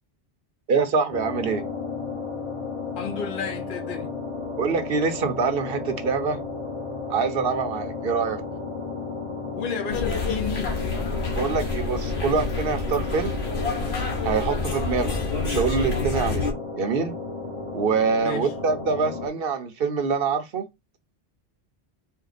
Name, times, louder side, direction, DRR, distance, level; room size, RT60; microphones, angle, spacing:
voice 1, 0.7-1.6 4.6-6.4 7.1-8.4 11.4-13.4 14.2-15.2 15.4-16.5 16.8-17.2 17.7-20.7, right 5 dB, 60° right, 1.0 m, -25 dB
sound 1, 1.1-19.3, left 4 dB, 30° left, 1.1 m, -33 dB
voice 2, 3.0-4.1 9.5-10.8 18.2-18.5, left 6 dB, 55° left, 0.9 m, -32 dB
sound 2, 9.9-16.5, left 3 dB, 75° left, 1.3 m, -28 dB
4.4 x 2.2 x 3.9 m
omnidirectional pair, 1.1 m